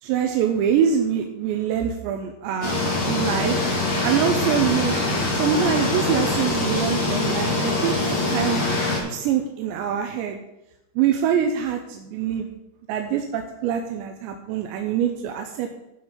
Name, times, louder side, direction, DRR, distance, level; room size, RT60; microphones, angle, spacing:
voice 1, 0.0-2.8 3.0-3.6 4.0-5.0 5.3-8.0 8.3-8.6 9.0-10.4 11.0-12.5 12.9-15.7, right 8 dB, 80° right, 4 dB, 2.7 m, -24 dB
sound 1, 2.6-9.0, left 2 dB, 35° left, 3.0 m, -23 dB
15.0 x 5.3 x 5.8 m, 0.94 s
omnidirectional pair, 5.8 m